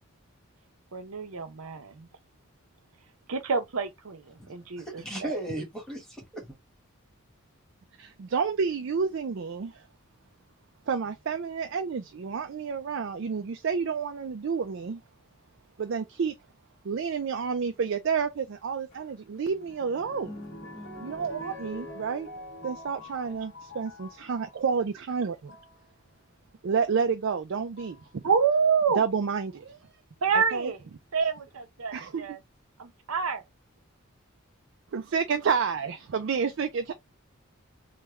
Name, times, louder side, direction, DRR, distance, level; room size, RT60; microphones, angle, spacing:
voice 1, 0.9-2.1 3.3-4.2 4.5-5.3 28.2-29.0 30.2-30.8 31.1-32.4 32.8-33.4, right 6 dB, 85° right, 0.7 m, -27 dB
voice 2, 4.4-6.6, right 1 dB, ahead, 1.3 m, -37 dB
voice 3, 8.0-9.8 10.9-15.0 15.8-16.3 16.8-20.3 21.0-22.3 22.6-25.5 26.6-28.2 29.0-29.8 30.3-30.7 31.9-32.4 34.9-36.9, right 6 dB, 55° right, 0.4 m, -30 dB
sound 1, 18.9-24.5 25.3-25.7 27.0-27.1 27.8-28.1 30.2-30.8 31.5-31.6 31.8-31.9, left 1 dB, 45° left, 1.8 m, -45 dB
3.4 x 2.2 x 3.0 m
head